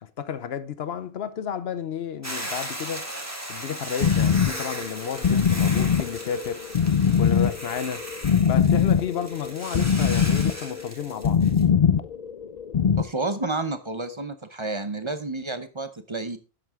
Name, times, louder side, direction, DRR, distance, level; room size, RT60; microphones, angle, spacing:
voice 1, 0.0-3.1 3.5-6.6 7.2-8.1 8.5-11.4, left 8 dB, 80° left, 1.0 m, -32 dB
Hiss / Boiling, 2.2-11.6, right 1 dB, 15° right, 2.0 m, -37 dB
sound 1, 4.0-13.0, left 7 dB, 50° left, 0.6 m, -22 dB
voice 2, 13.0-16.4, right 2 dB, 30° right, 0.8 m, -30 dB
11.5 x 7.8 x 3.6 m
omnidirectional pair, 1.0 m